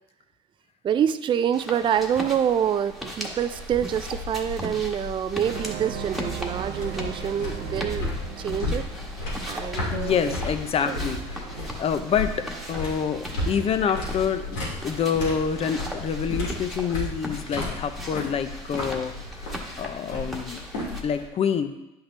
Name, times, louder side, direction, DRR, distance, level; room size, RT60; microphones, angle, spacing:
voice 1, 0.8-8.1 8.4-8.9 9.4-10.3 10.8-11.0, right 9 dB, 30° right, 11 dB, 0.4 m, -26 dB
sound 1, 1.5-21.0, equal, ahead, 1.5 m, -39 dB
sound 2, 2.0-21.3, left 2 dB, 85° left, 2.9 m, -34 dB
sound 3, 5.4-15.6, right 9 dB, 70° right, 0.7 m, -40 dB
voice 2, 9.9-11.5 11.8-19.1 19.4-19.5 19.8-20.6 21.0-21.7, left 7 dB, 40° left, 9 dB, 0.8 m, -27 dB
9.9 x 5.7 x 3.4 m, 0.94 s
supercardioid pair, 90°, 16 cm